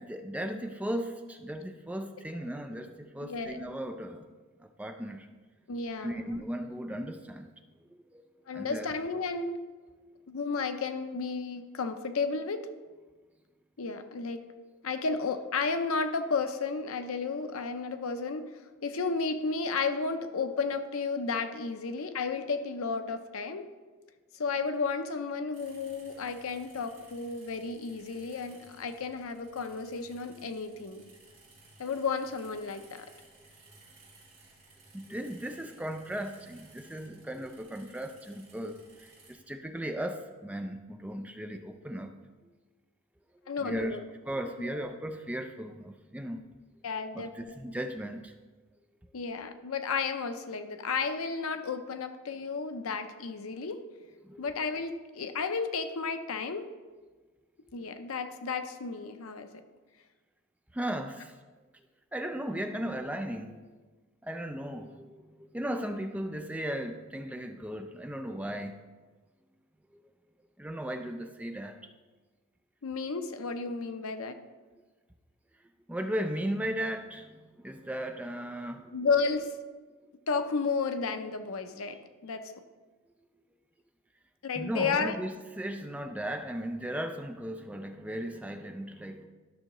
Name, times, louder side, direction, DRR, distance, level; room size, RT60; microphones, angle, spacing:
voice 1, 0.0-4.3 4.6-5.3 6.0-7.5 8.1-8.2 8.5-8.9 34.9-42.1 42.4-42.5 43.6-44.0 44.3-46.5 47.1-48.3 54.2-54.5 60.7-61.4 62.1-63.7 64.2-68.8 70.6-71.8 75.9-78.9 84.6-89.3, right 1 dB, 5° right, 6 dB, 0.4 m, -36 dB
voice 2, 3.2-3.6 5.7-6.4 8.5-9.6 10.3-12.6 13.8-14.5 14.8-18.4 18.8-23.7 24.3-31.1 31.8-33.1 43.5-44.0 44.6-44.9 46.8-47.6 49.1-53.8 54.4-56.7 57.7-59.5 72.8-74.4 78.9-79.5 80.3-82.5 84.4-85.2, left 4 dB, 85° left, 9 dB, 0.6 m, -33 dB
sound 1, 25.5-39.3, right 2 dB, 35° right, 3.0 m, -58 dB
12.0 x 6.3 x 3.0 m, 1.3 s
head